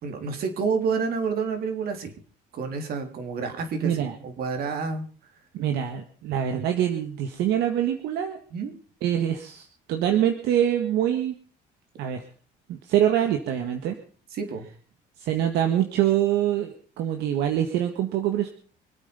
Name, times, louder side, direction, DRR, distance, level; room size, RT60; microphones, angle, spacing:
voice 1, 0.0-2.1 2.5-5.1 8.5-8.8 14.3-14.6, right 5 dB, 65° right, 6 dB, 3.8 m, -29 dB
voice 2, 3.8-4.1 5.5-8.4 9.0-11.4 12.0-12.2 12.7-14.0 15.2-18.5, right 10 dB, 80° right, 6 dB, 1.8 m, -25 dB
25.5 x 9.0 x 5.4 m, 0.42 s
cardioid pair, 110°, 17 cm